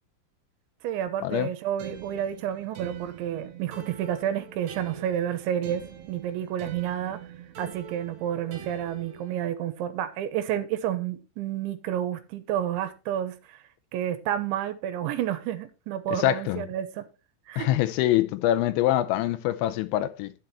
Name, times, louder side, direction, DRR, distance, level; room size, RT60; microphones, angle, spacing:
voice 1, 0.8-7.2 7.6-13.6 13.9-17.0 17.5-17.7, right 10 dB, 80° right, 3.3 m, -30 dB
sound 1, 1.8-9.5, right 8 dB, 65° right, 3.5 m, -43 dB
voice 2, 16.1-16.6 17.6-20.3, left 14 dB, 80° left, 2.9 m, -24 dB
11.0 x 7.7 x 4.3 m
omnidirectional pair, 5.4 m